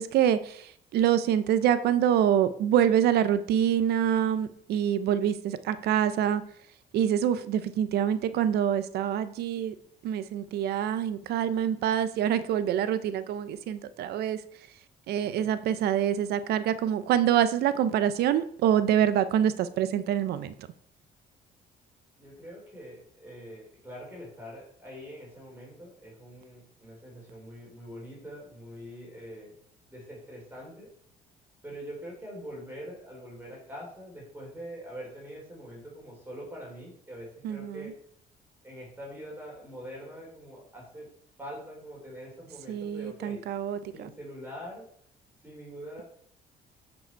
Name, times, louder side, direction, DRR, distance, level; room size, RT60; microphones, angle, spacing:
voice 1, 0.0-6.4 6.9-9.7 10.0-14.4 15.1-20.5 37.4-37.9 42.7-44.1, right 10 dB, 75° right, 0.7 m, -26 dB
voice 2, 15.2-15.5 22.2-29.5 29.9-30.9 31.6-38.0 38.6-41.1 41.4-43.4 43.9-44.9 45.4-46.0, equal, 10° right, 3.7 m, -44 dB
9.1 x 5.4 x 4.6 m
cardioid pair, 110°, 17 cm